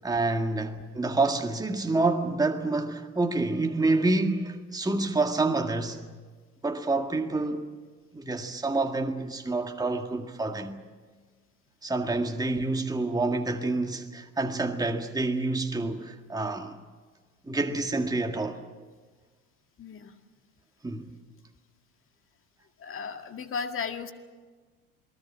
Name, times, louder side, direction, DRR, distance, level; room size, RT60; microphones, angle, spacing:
voice 1, 0.0-6.1 6.6-7.7 8.1-10.8 11.8-16.8 17.5-18.6 20.8-21.1, right 2 dB, 10° right, 1.9 m, -28 dB
voice 2, 19.8-20.2 22.8-24.1, left 6 dB, 30° left, 2.1 m, -35 dB
28.0 x 19.5 x 7.5 m
hypercardioid pair, 75°, 43 cm